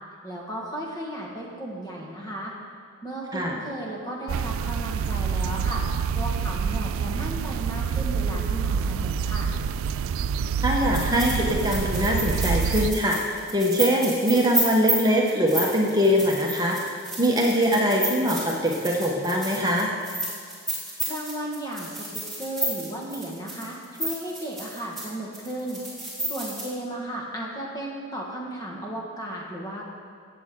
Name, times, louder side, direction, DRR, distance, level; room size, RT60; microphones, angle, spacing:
voice 1, 0.2-2.5 3.0-5.8 6.1-9.5 20.9-25.8 26.3-29.8, right 1 dB, 15° left, -3 dB, 1.6 m, -34 dB
sound 1, 4.3-12.9, right 6 dB, 70° right, 0.3 m, -27 dB
voice 2, 10.6-19.9, equal, 20° right, -1 dB, 1.0 m, -23 dB
sound 2, 10.9-25.0 25.3-26.7, right 1 dB, ahead, 2.8 m, -31 dB
16.0 x 7.7 x 3.7 m, 2.2 s
head